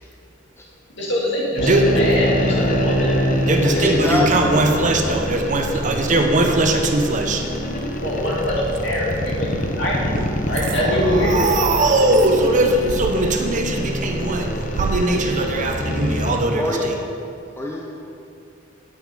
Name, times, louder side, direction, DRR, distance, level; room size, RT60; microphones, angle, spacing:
voice 1, 1.0-3.4 8.0-11.7, equal, 65° left, -5 dB, 2.4 m, -24 dB
sound 1, 1.6-16.4, equal, 40° left, 0.9 m, -25 dB
voice 2, 1.6-2.0 3.4-7.4 10.5-17.0, right 2 dB, 40° right, 4 dB, 0.7 m, -20 dB
voice 3, 2.4-2.8 3.6-4.7 16.6-16.8 17.6-18.0, left 2 dB, 15° left, -2 dB, 0.8 m, -25 dB
sound 2, 6.0-6.7 7.1-9.3 10.0-10.1 10.5-10.9 11.2-12.4 12.8-14.0 14.3-15.9 16.3-16.4, right 6 dB, 65° right, 0.3 m, -33 dB
9.3 x 6.5 x 5.1 m, 2.6 s
head